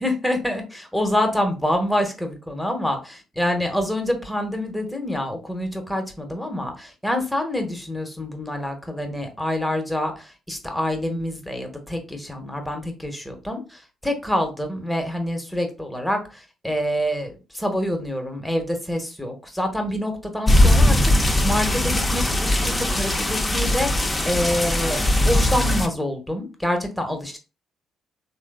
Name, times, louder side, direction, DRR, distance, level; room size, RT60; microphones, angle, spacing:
voice 1, 0.0-3.0 3.4-27.4, left 1 dB, ahead, 4 dB, 0.9 m, -26 dB
sound 1, 20.5-25.9, left 1 dB, 15° left, 0.6 m, -20 dB
3.3 x 2.6 x 2.3 m, 0.31 s
hypercardioid pair, 45°, 0 cm